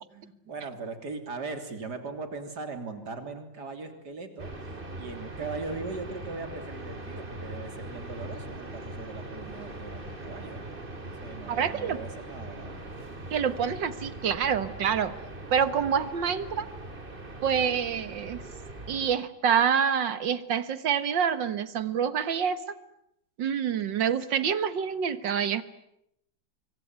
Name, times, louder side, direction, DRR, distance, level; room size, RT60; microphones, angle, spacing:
voice 1, 0.1-4.5 5.0-10.7 11.2-12.9, right 3 dB, 60° right, 7 dB, 3.8 m, -39 dB
sound 1, 4.4-19.1, right 2 dB, 30° right, 2.9 m, -41 dB
voice 2, 11.5-12.0 13.3-15.1 15.5-16.7 17.4-18.4 18.9-22.6 23.4-25.6, right 7 dB, 80° right, 13 dB, 2.1 m, -27 dB
26.0 x 24.0 x 9.4 m, 0.80 s
omnidirectional pair, 2.0 m